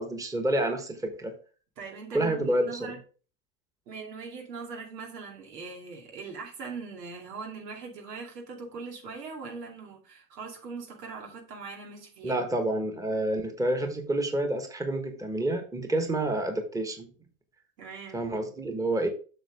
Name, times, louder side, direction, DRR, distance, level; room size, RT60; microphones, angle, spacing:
voice 1, 0.0-1.3 2.1-2.9 12.2-17.1 18.1-19.1, right 1 dB, 5° right, 1.3 m, -28 dB
voice 2, 1.8-3.0 3.9-12.4 17.8-18.2, right 4 dB, 85° right, 2.6 m, -41 dB
7.8 x 6.0 x 3.4 m
hypercardioid pair, 100°, 47 cm